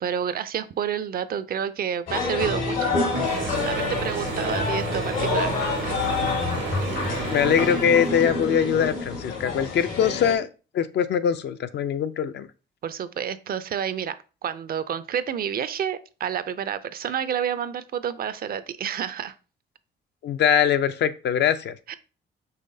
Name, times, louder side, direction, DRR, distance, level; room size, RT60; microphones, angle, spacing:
voice 1, 0.0-3.2 3.7-5.9 12.8-14.2 14.4-19.3 21.9-22.0, right 8 dB, 50° right, 14 dB, 0.4 m, -29 dB
sound 1, 2.1-10.4, left 4 dB, 80° left, 1.9 m, -27 dB
Mechanisms / Drill, 3.1-8.6, right 6 dB, 80° right, 0.9 m, -32 dB
voice 2, 7.3-10.5 10.7-12.5 20.2-21.8, left 8 dB, 60° left, 11 dB, 0.4 m, -22 dB
5.5 x 3.1 x 2.6 m, 0.34 s
cardioid pair, 90°, 20 cm